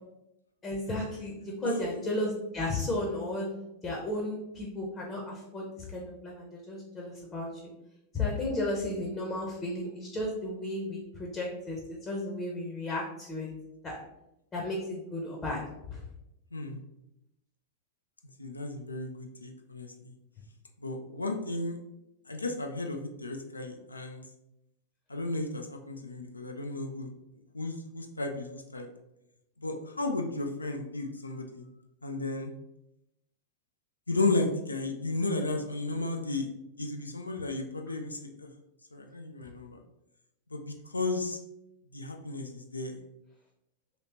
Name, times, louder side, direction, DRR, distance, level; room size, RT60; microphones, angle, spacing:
voice 1, 0.6-3.5 3.8-7.5 8.1-13.5 13.8-14.0 14.5-15.6 15.9-16.0, left 1 dB, 20° left, -2 dB, 0.7 m, -34 dB
voice 2, 18.4-20.1 20.8-21.8 22.3-24.2 25.1-27.1 27.5-28.9 29.6-31.7 32.0-32.5 34.1-36.5 36.8-38.5 38.9-39.8 40.5-41.4 41.9-43.0, left 2 dB, 80° left, 4 dB, 0.3 m, -34 dB
3.2 x 2.9 x 2.9 m, 0.86 s
figure-of-eight pair, 90°, 0 cm